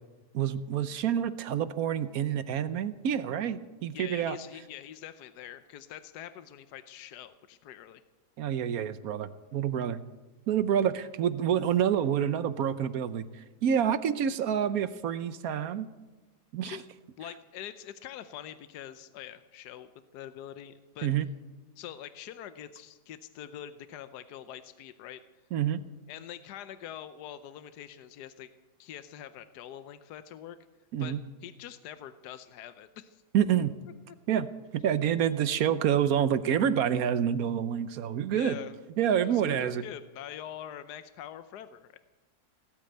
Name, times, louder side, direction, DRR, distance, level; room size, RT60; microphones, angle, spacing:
voice 1, 0.3-4.4 8.4-10.0 10.5-13.2 13.6-15.9 16.5-16.8 21.0-21.2 25.5-25.8 30.9-31.2 33.3-33.7 34.3-34.5 34.8-38.6 39.0-39.8, right 9 dB, 65° right, 13 dB, 1.1 m, -27 dB
voice 2, 3.9-8.0 16.6-16.9 17.2-21.1 21.8-25.2 26.1-28.5 28.8-30.6 31.0-31.2 31.4-33.2 34.1-34.2 38.3-38.7 39.1-42.0, left 10 dB, 80° left, 12 dB, 1.3 m, -44 dB
18.0 x 8.6 x 9.0 m, 1.1 s
omnidirectional pair, 1.8 m